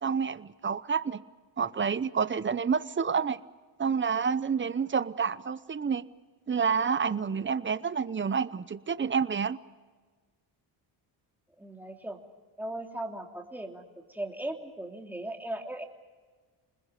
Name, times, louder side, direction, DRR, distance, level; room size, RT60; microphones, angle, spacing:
voice 1, 0.0-1.2 1.6-3.4 3.8-6.0 6.5-9.6, right 6 dB, 25° right, 16 dB, 0.8 m, -28 dB
voice 2, 11.6-12.2 12.6-15.9, right 1 dB, 5° right, 2 dB, 3.0 m, -38 dB
27.0 x 20.5 x 6.6 m, 1.4 s
cardioid pair, 105°, 49 cm